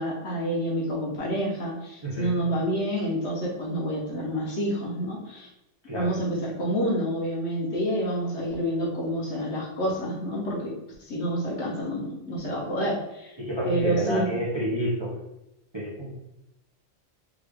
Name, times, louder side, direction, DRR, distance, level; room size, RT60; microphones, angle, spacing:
voice 1, 0.0-5.5 5.9-10.7 11.0-13.3 13.6-14.4, equal, 60° left, -2 dB, 1.1 m, -28 dB
voice 2, 2.0-2.4 5.8-6.1 13.4-15.1 15.7-16.1, equal, 30° right, -5 dB, 0.5 m, -29 dB
3.7 x 2.4 x 3.3 m, 0.89 s
omnidirectional pair, 1.3 m